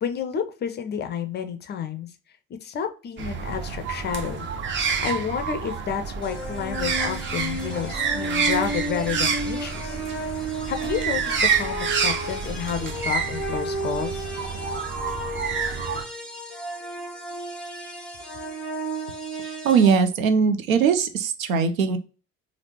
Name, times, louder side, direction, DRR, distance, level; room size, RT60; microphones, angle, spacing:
voice 1, 0.0-2.1 2.6-10.0 10.4-14.3, left 7 dB, 25° left, 8 dB, 0.4 m, -30 dB
sound 1, 3.2-16.0, right 6 dB, 30° right, 0.6 m, -28 dB
sound 2, 6.2-19.9, right 1 dB, ahead, 0.8 m, -33 dB
voice 2, 19.4-22.0, right 6 dB, 80° right, 8 dB, 0.5 m, -21 dB
3.3 x 2.4 x 2.8 m, 0.35 s
figure-of-eight pair, 55°, 40 cm